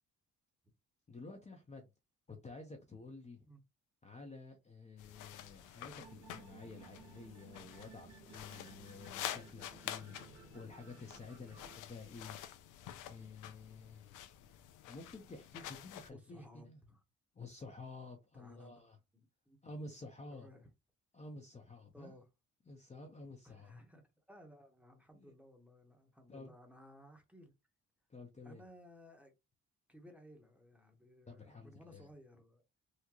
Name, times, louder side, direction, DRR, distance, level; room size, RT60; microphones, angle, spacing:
voice 1, 1.1-1.9 2.3-3.5 4.0-12.4 13.1-14.2 14.9-16.8 17.3-19.0 19.6-20.5 21.1-22.1 22.7-23.7 25.1-25.3 26.3-26.5 28.1-28.6 31.3-32.1, left 3 dB, 25° left, 0.7 m, -51 dB
sound 1, 5.0-16.1, left 11 dB, 90° left, 0.5 m, -49 dB
sound 2, 5.9-11.8, right 5 dB, 65° right, 1.7 m, -58 dB
voice 2, 16.1-17.0 18.3-18.8 19.1-19.6 20.3-20.7 21.9-22.3 23.4-27.5 28.4-29.3 29.9-32.6, equal, 5° right, 1.0 m, -58 dB
3.7 x 2.1 x 2.9 m
cardioid pair, 90°, 30 cm